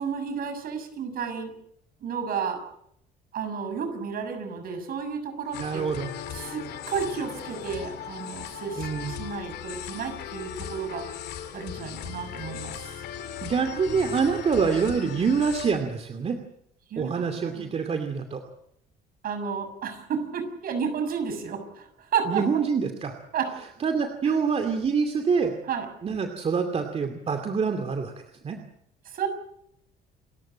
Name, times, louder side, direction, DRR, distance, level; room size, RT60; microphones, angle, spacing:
voice 1, 0.0-1.5 2.0-2.6 3.3-5.9 6.3-11.0 11.5-12.9 16.9-17.6 19.2-22.4 23.3-23.5 24.2-24.4 25.7-25.9 29.0-29.3, right 6 dB, 60° right, 7 dB, 6.7 m, -32 dB
sound 1, 5.5-15.7, left 10 dB, 75° left, 3.5 m, -38 dB
voice 2, 5.6-6.1 8.8-9.2 13.4-16.4 17.0-18.4 22.3-23.1 23.8-25.5 26.0-28.1 28.4-28.6, right 5 dB, 35° right, 6 dB, 2.5 m, -26 dB
28.5 x 14.0 x 9.0 m, 0.74 s
cardioid pair, 110°, 17 cm